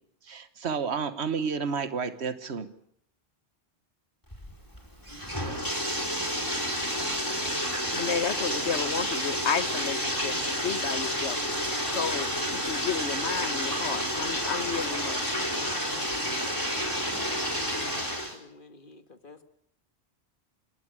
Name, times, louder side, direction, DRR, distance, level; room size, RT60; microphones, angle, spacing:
voice 1, 0.2-2.7, right 5 dB, 80° right, 12 dB, 1.5 m, -31 dB
Bathtub (filling or washing), 4.3-18.4, equal, 20° left, 4.7 m, -30 dB
voice 2, 7.9-11.4 11.9-15.3, left 6 dB, 85° left, 14 dB, 1.4 m, -32 dB
voice 3, 17.2-19.4, left 2 dB, 50° left, 9 dB, 1.9 m, -52 dB
29.0 x 12.5 x 9.9 m, 0.72 s
omnidirectional pair, 1.1 m